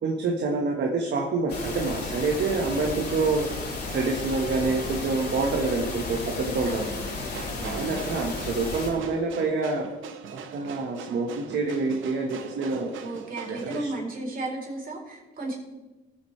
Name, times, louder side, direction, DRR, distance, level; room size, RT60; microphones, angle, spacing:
voice 1, 0.0-3.5 3.9-6.9 7.6-9.9 10.3-13.0 13.5-13.9, right 3 dB, 60° right, 1 dB, 1.5 m, -27 dB
sound 1, 1.5-8.9, left 3 dB, 55° left, 3.5 m, -33 dB
voice 2, 6.6-7.1 7.6-8.0 13.0-15.5, right 2 dB, 45° right, -1 dB, 4.1 m, -34 dB
sound 2, 7.2-13.8, right 7 dB, 85° right, 1.0 m, -42 dB
18.5 x 7.5 x 3.4 m, 1.1 s
cardioid pair, 90°, 20 cm